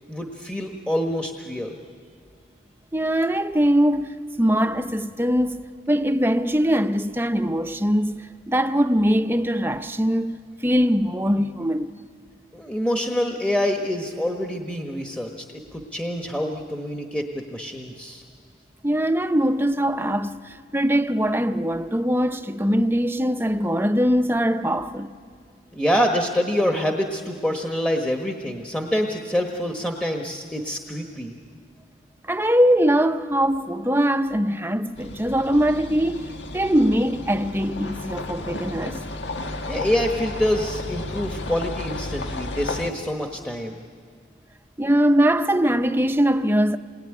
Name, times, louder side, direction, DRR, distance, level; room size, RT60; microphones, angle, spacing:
voice 1, 0.1-1.8 12.5-18.2 25.7-31.4 39.7-43.8, equal, 5° left, 1.2 m, -26 dB
voice 2, 2.9-11.9 18.8-25.1 32.3-39.0 44.8-46.8, equal, 10° right, 0.7 m, -22 dB
sound 1, 35.0-42.9, left 2 dB, 80° left, 1.7 m, -33 dB
28.0 x 21.0 x 9.9 m
head